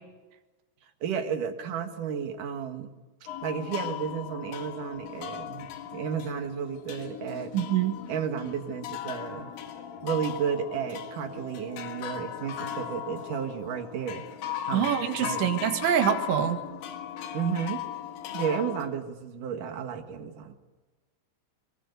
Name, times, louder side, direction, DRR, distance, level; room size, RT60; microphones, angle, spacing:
voice 1, 1.0-2.9 3.4-7.5 8.1-9.5 10.0-14.3 14.7-14.9 15.2-15.5 17.3-17.8 18.3-20.5, right 7 dB, 60° right, 6 dB, 2.5 m, -32 dB
sound 1, 3.3-18.9, left 10 dB, 60° left, 2.8 m, -38 dB
voice 2, 7.5-7.9 14.7-16.6, right 10 dB, 80° right, 6 dB, 4.0 m, -25 dB
23.5 x 20.0 x 8.2 m, 1.2 s
omnidirectional pair, 5.4 m